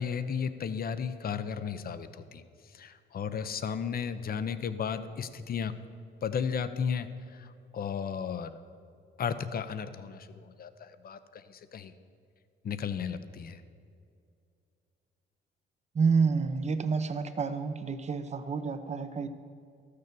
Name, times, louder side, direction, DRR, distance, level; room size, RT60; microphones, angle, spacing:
voice 1, 0.0-2.4 2.7-5.7 6.2-8.6 9.2-11.9 12.6-13.6, left 7 dB, 50° left, 12 dB, 0.7 m, -34 dB
voice 2, 15.9-19.3, right 5 dB, 35° right, 10 dB, 0.8 m, -29 dB
13.0 x 6.7 x 6.9 m, 2.4 s
cardioid pair, 90°, 20 cm